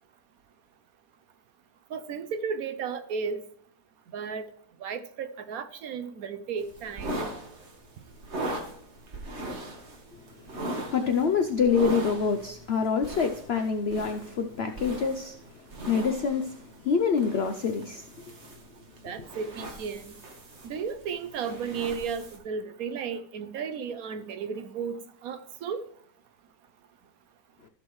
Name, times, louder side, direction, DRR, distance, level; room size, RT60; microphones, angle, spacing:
voice 1, 1.9-3.4 4.1-4.4 4.8-7.2 19.0-20.1 20.6-25.8, right 6 dB, 70° right, 11 dB, 1.0 m, -34 dB
sound 1, 6.6-22.4, right 1 dB, 40° right, 1.7 m, -39 dB
voice 2, 10.9-15.3 15.9-16.5 16.8-18.0, left 5 dB, 80° left, 6 dB, 0.5 m, -26 dB
15.0 x 6.2 x 3.1 m, 0.63 s
omnidirectional pair, 1.8 m